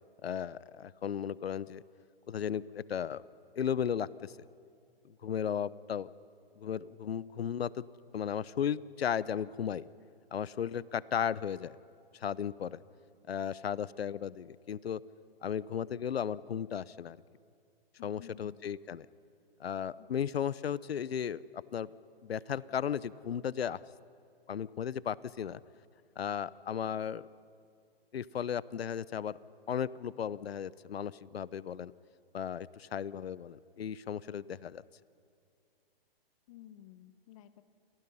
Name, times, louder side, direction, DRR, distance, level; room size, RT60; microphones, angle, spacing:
voice 1, 0.2-1.8 2.3-3.2 3.6-4.5 5.0-6.1 6.6-7.8 8.1-9.9 10.3-11.7 12.1-12.8 13.3-15.0 15.4-17.2 18.0-19.1 19.6-21.4 21.7-21.9 22.2-23.8 24.5-25.6 26.2-27.3 28.1-29.4 29.7-31.9 32.3-34.8, left 8 dB, 80° left, 19 dB, 0.9 m, -35 dB
voice 2, 18.0-18.6 20.0-20.1 36.5-37.6, left 12 dB, 35° left, 12 dB, 1.3 m, -53 dB
28.5 x 28.5 x 5.6 m, 2.4 s
hypercardioid pair, 150°, 30 cm